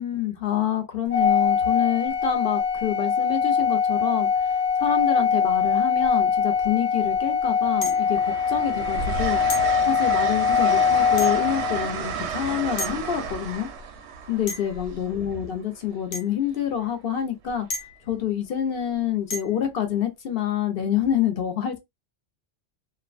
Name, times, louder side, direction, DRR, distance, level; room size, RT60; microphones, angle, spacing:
voice 1, 0.0-9.4 9.8-13.7 14.3-17.7 18.1-21.8, left 9 dB, 65° left, 0.8 m, -27 dB
Organ, 1.1-12.0, left 6 dB, 20° left, 0.3 m, -22 dB
Train, 4.4-4.7 6.0-6.7 7.1-15.9 17.5-17.7, right 6 dB, 80° right, 0.8 m, -33 dB
sound 1, 7.8-8.2 9.5-9.7 11.2-11.5 12.8-13.0 14.5-14.8 16.1-16.3 17.7-18.1 19.3-19.6, left 2 dB, 85° left, 1.0 m, -33 dB
2.5 x 2.2 x 2.4 m
omnidirectional pair, 1.1 m